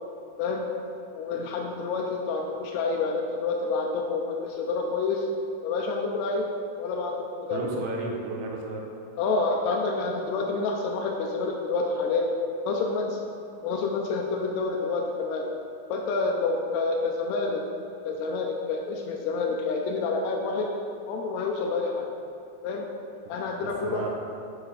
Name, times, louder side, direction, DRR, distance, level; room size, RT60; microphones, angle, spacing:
voice 1, 0.4-0.7 1.1-5.3 5.6-6.5 6.8-7.7 9.2-12.3 12.7-13.2 13.6-15.4 15.9-17.6 18.0-20.7 21.1-22.1 22.6-22.9 23.3-24.0, left 3 dB, 80° left, 0 dB, 1.6 m, -28 dB
voice 2, 7.5-8.8 23.6-24.1, right 3 dB, 90° right, 0 dB, 2.2 m, -33 dB
6.2 x 4.6 x 3.2 m, 2.5 s
omnidirectional pair, 3.6 m